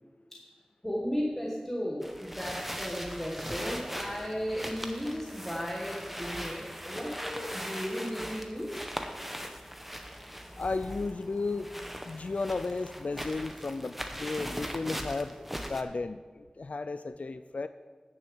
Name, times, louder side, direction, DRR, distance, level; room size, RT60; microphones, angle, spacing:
voice 1, 0.8-8.8, equal, 10° left, -3 dB, 1.6 m, -35 dB
sound 1, 2.0-15.8, equal, 5° right, 0.9 m, -40 dB
voice 2, 10.5-11.7 12.0-17.7, left 3 dB, 65° left, 11 dB, 0.3 m, -34 dB
9.8 x 6.7 x 7.1 m, 1.5 s
wide cardioid pair, 65°, 2 cm